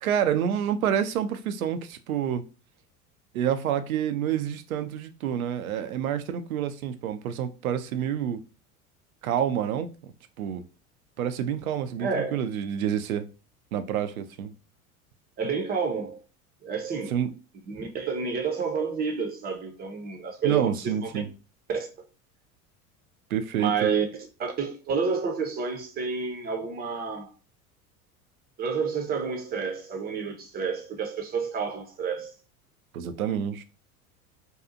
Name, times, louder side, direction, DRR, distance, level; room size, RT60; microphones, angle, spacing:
voice 1, 0.0-2.4 3.3-8.4 9.2-9.9 10.4-10.6 11.2-13.3 13.7-14.5 17.1-17.3 20.4-21.3 23.3-23.9 32.9-33.6, right 9 dB, 70° right, 0.5 m, -28 dB
voice 2, 12.0-12.4 15.4-16.2 16.6-17.1 17.6-21.1 21.7-21.9 23.6-24.0 24.4-27.3 28.6-32.3, right 5 dB, 20° right, 0.6 m, -29 dB
2.7 x 2.3 x 2.5 m
figure-of-eight pair, 75°, 45 cm